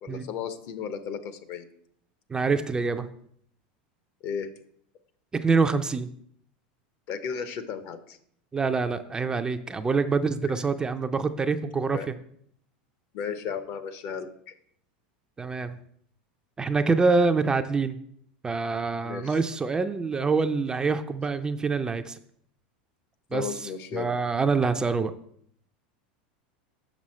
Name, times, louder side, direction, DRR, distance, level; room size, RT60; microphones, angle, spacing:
voice 1, 0.0-1.7 4.2-4.5 7.1-8.2 11.9-12.1 13.1-14.6 19.0-19.4 23.3-24.1, left 7 dB, 55° left, 11 dB, 0.8 m, -34 dB
voice 2, 2.3-3.1 5.3-6.1 8.5-12.1 15.4-15.8 16.6-18.0 18.4-22.2 23.3-23.5 23.9-25.1, right 4 dB, 15° right, 8 dB, 0.4 m, -25 dB
6.2 x 5.9 x 4.2 m, 0.67 s
supercardioid pair, 120°, 5 cm